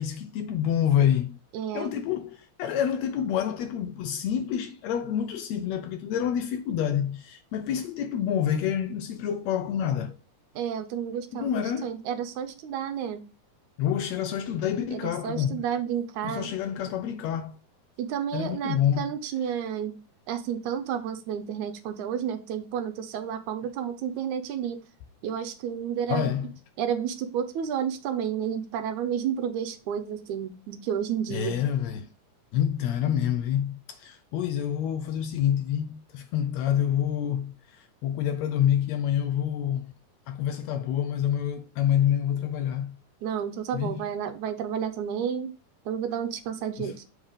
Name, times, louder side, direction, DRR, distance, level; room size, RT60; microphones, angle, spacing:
voice 1, 0.0-1.4 1.7-10.2 11.3-11.9 13.8-15.6 16.2-17.6 18.3-19.1 26.1-26.5 31.3-32.1 32.5-39.9 40.3-43.0 43.7-44.0 46.8-46.9, left 9 dB, 75° left, 1.7 m, -27 dB
voice 2, 1.5-1.9 10.6-13.2 14.9-16.5 18.0-19.9 20.3-24.8 25.2-26.3 26.8-31.6 43.2-45.5 45.9-47.1, right 8 dB, 80° right, 2.1 m, -31 dB
7.1 x 3.6 x 5.0 m
omnidirectional pair, 3.5 m